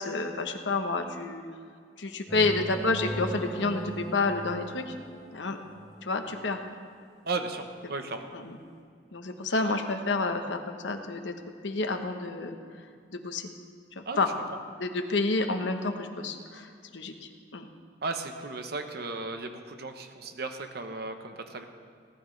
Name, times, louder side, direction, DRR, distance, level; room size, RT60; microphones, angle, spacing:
voice 1, 0.0-1.4 2.0-4.9 5.3-5.6 6.0-6.6 8.3-8.5 9.1-11.3 11.6-12.5 13.1-13.5 14.0-14.3 14.8-17.7, left 3 dB, 75° left, 5 dB, 1.1 m, -29 dB
sound 1, 2.3-6.3, right 1 dB, ahead, 3.6 m, -39 dB
voice 2, 7.2-8.3 14.1-14.3 18.0-21.7, right 3 dB, 55° right, 6 dB, 1.0 m, -35 dB
18.0 x 11.5 x 3.3 m, 2.2 s
head